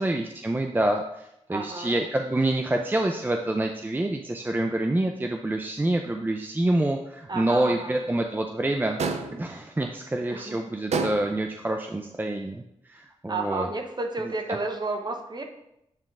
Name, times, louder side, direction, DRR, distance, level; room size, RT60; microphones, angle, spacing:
voice 1, 0.0-9.0 9.3-12.6 12.9-13.7, right 1 dB, 15° right, 4 dB, 0.5 m, -27 dB
voice 2, 1.5-2.0 7.3-8.0 10.3-10.6 13.3-15.4, right 3 dB, 40° right, 3 dB, 1.1 m, -31 dB
sound 1, 9.0-9.5 10.9-11.5, right 4 dB, 75° right, 0.6 m, -28 dB
9.0 x 3.7 x 3.6 m, 0.81 s
cardioid pair, 60°, 11 cm